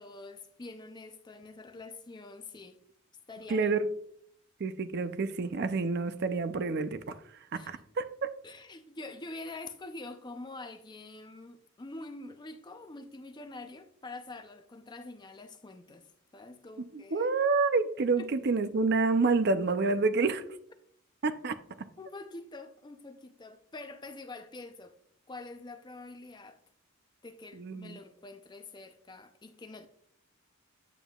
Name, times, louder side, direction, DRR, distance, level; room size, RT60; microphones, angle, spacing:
voice 1, 0.0-2.8 3.3-3.7 7.5-7.8 8.4-16.0 16.3-17.3 18.2-18.3 19.9-20.0 22.0-25.0 25.3-26.6 27.2-29.9, left 2 dB, 20° left, 0.5 m, -46 dB
voice 2, 3.5-3.9 4.6-7.2 7.5-8.3 16.9-20.4 21.2-21.6 27.5-28.0, right 4 dB, 50° right, 0.5 m, -28 dB
9.0 x 7.1 x 2.3 m
head